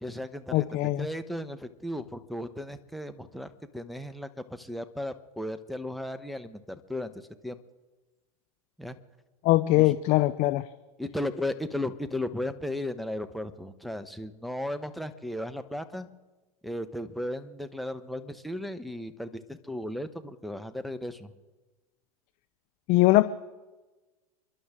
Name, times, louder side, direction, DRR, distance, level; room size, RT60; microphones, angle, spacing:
voice 1, 0.0-7.6 8.8-9.0 9.7-9.9 11.0-16.1 16.6-21.3, left 1 dB, ahead, 8 dB, 1.0 m, -35 dB
voice 2, 0.5-1.1 9.4-10.6 22.9-23.2, left 18 dB, 40° left, 13 dB, 0.6 m, -21 dB
30.0 x 11.5 x 3.7 m, 1.2 s
hypercardioid pair, 95°, 19 cm